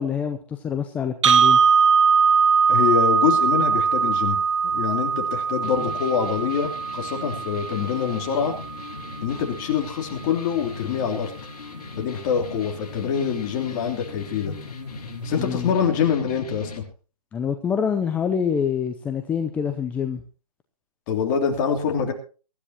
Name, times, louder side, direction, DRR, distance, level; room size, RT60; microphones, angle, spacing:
voice 1, 0.0-1.6 15.3-15.7 17.3-20.2, left 7 dB, 5° left, 6 dB, 0.6 m, -26 dB
sound 1, 1.2-9.3, right 6 dB, 45° right, 1.2 m, -21 dB
voice 2, 2.7-4.4 4.7-8.6 9.2-11.3 12.0-14.5 15.2-16.8 21.1-22.1, left 7 dB, 30° left, 3 dB, 3.1 m, -25 dB
sound 2, 5.6-16.8, left 4 dB, 65° left, 4.6 m, -39 dB
23.5 x 12.5 x 2.9 m, 0.35 s
hypercardioid pair, 150°, 21 cm